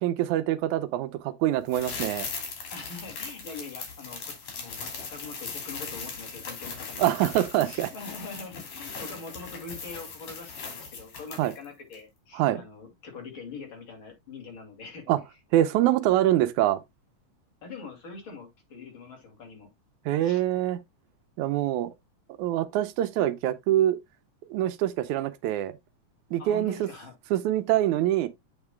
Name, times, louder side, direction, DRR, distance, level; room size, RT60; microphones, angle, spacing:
voice 1, 0.0-2.3 7.0-7.9 11.4-11.5 12.3-12.6 15.1-15.2 15.5-16.8 20.1-20.8 21.4-21.9 22.4-24.0 24.5-25.7 26.3-26.9 27.3-28.3, right 13 dB, 85° right, 2.2 m, -25 dB
sound 1, 1.7-11.7 11.9-12.0, left 5 dB, 70° left, 4.0 m, -39 dB
voice 2, 2.7-7.1 7.6-15.0 17.6-19.7 20.2-20.4 26.4-27.1, left 4 dB, 45° left, 3.2 m, -43 dB
8.1 x 7.2 x 2.2 m
omnidirectional pair, 3.4 m